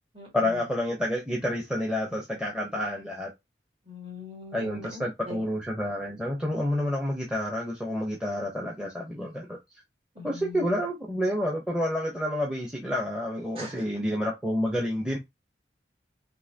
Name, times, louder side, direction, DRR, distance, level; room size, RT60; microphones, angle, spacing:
voice 1, 0.3-3.3 4.5-9.6 10.2-15.2, left 1 dB, 5° right, 0.8 m, -29 dB
voice 2, 3.9-5.4 10.2-10.8 13.5-13.8, left 2 dB, 30° right, 1.9 m, -42 dB
5.5 x 3.0 x 2.8 m
head